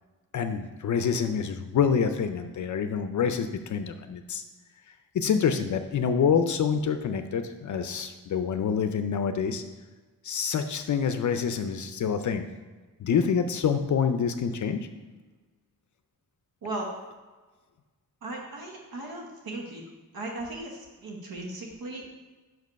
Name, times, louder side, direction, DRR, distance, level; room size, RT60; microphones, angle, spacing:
voice 1, 0.3-4.4 5.1-9.6 10.2-12.4 13.0-14.9, left 6 dB, 55° left, 8 dB, 0.5 m, -26 dB
voice 2, 18.2-19.8 20.1-22.1, right 2 dB, 85° right, 0 dB, 1.1 m, -37 dB
5.9 x 5.3 x 5.1 m, 1.3 s
wide cardioid pair, 155°, 35 cm